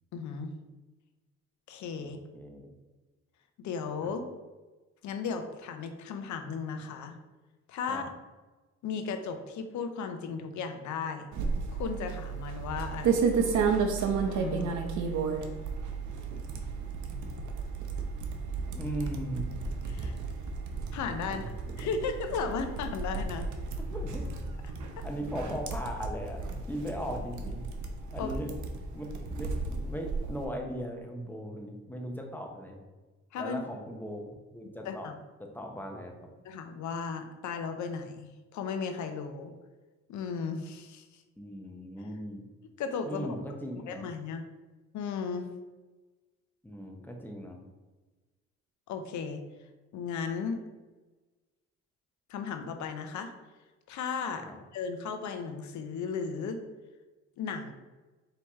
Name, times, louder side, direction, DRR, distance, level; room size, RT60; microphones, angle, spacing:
voice 1, 0.1-0.5 1.7-2.2 3.6-4.2 5.0-7.2 7.7-8.0 8.8-11.3 11.7-13.4 14.3-14.7 19.9-20.2 20.9-21.4 21.8-23.5 28.2-28.3 33.3-33.6 34.9-35.1 36.4-39.5 40.1-41.2 42.8-43.4 43.9-44.4 44.9-45.5 48.9-49.4 49.9-50.6 52.3-53.3 53.9-54.5 54.7-56.6 57.4-57.7, left 5 dB, 70° left, 7 dB, 0.6 m, -35 dB
voice 2, 2.0-2.7 4.0-4.1 7.9-8.0 18.7-19.5 21.2-21.9 23.9-24.3 25.0-27.6 28.1-28.5 28.9-32.8 33.3-35.1 35.4-36.3 41.4-42.4 43.1-44.1 46.6-47.6 54.4-54.6, equal, 5° left, 2 dB, 0.7 m, -38 dB
sound 1, 11.3-30.4, right 5 dB, 75° right, 0.6 m, -33 dB
4.5 x 2.9 x 3.5 m, 1.2 s
cardioid pair, 90°, 30 cm